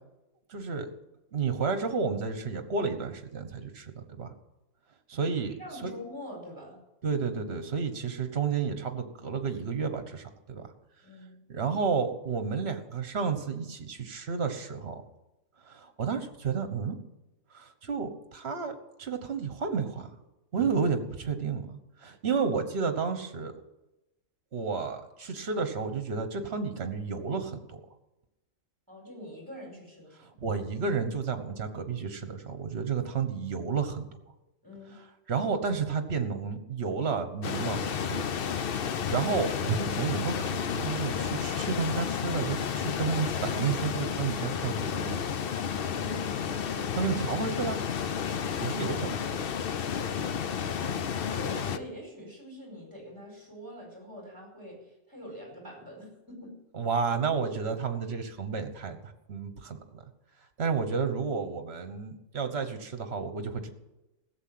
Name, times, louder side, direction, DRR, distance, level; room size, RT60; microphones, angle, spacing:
voice 1, 0.5-0.9 1.3-4.3 5.1-5.5 5.8-5.9 7.0-10.6 11.5-15.0 15.7-17.0 17.5-20.1 20.5-23.5 24.5-27.8 30.2-34.1 35.3-38.3 38.8-45.2 46.9-47.8 48.6-49.4 56.7-59.0 59.3-60.0 60.6-63.7, right 5 dB, 50° right, 8 dB, 1.5 m, -31 dB
voice 2, 5.6-6.8 11.0-11.4 28.9-30.3 34.6-35.0 45.8-47.0 50.0-56.6, left 1 dB, 15° right, 0 dB, 5.0 m, -45 dB
sound 1, 37.4-51.8, left 7 dB, 55° left, 0.8 m, -31 dB
16.0 x 7.5 x 7.7 m, 0.97 s
omnidirectional pair, 1.4 m